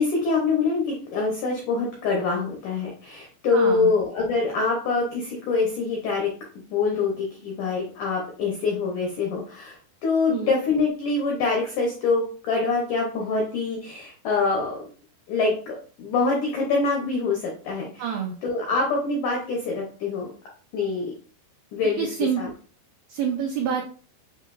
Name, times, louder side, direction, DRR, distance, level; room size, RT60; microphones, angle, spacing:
voice 1, 0.0-6.3 6.7-14.8 15.3-18.0 18.4-20.3 20.7-21.1 21.7-22.1 22.4-22.5, left 4 dB, 90° left, -1 dB, 1.7 m, -25 dB
voice 2, 3.5-3.9 10.3-10.6 18.0-18.3 22.0-22.4 23.1-23.8, right 7 dB, 85° right, 1 dB, 2.0 m, -27 dB
7.3 x 2.7 x 2.5 m, 0.41 s
omnidirectional pair, 5.0 m